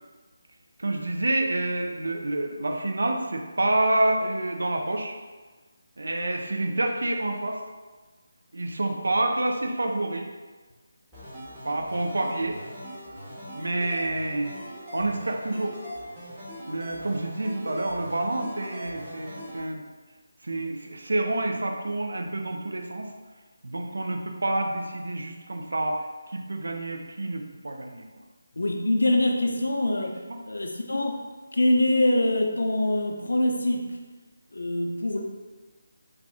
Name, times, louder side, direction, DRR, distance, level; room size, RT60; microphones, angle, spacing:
voice 1, 0.8-5.2 6.0-7.6 8.5-10.3 11.6-12.6 13.5-14.5 14.9-15.8 16.7-19.8 20.4-23.1 23.6-28.0 30.3-30.4, right 2 dB, 70° right, 2 dB, 0.4 m, -28 dB
sound 1, 11.1-19.6, equal, 10° right, 0.9 m, -41 dB
voice 2, 28.6-30.2 30.4-31.2 31.5-34.0 34.5-35.2, left 1 dB, 70° left, 2 dB, 0.4 m, -24 dB
2.4 x 2.1 x 3.5 m, 1.3 s
figure-of-eight pair, 155°, 0 cm